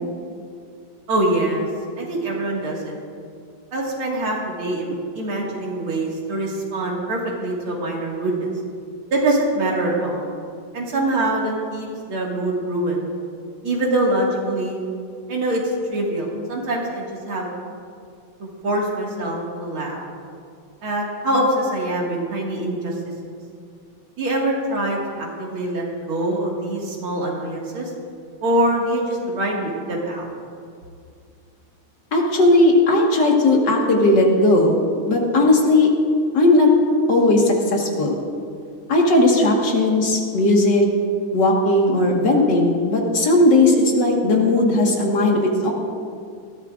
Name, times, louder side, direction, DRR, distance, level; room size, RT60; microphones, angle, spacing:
voice 1, 1.1-1.7 2.0-3.0 3.7-8.5 9.1-10.3 10.7-13.1 13.6-14.8 15.3-15.6 15.9-17.5 18.4-20.0 20.8-22.9 24.2-27.9 28.4-30.3, right 1 dB, 75° right, -2 dB, 2.9 m, -24 dB
voice 2, 32.1-34.8 35.1-35.9 36.3-36.7 37.1-38.2 38.9-40.8 41.3-45.7, left 2 dB, 55° left, -1 dB, 2.2 m, -17 dB
20.0 x 14.5 x 2.5 m, 2.3 s
omnidirectional pair, 2.3 m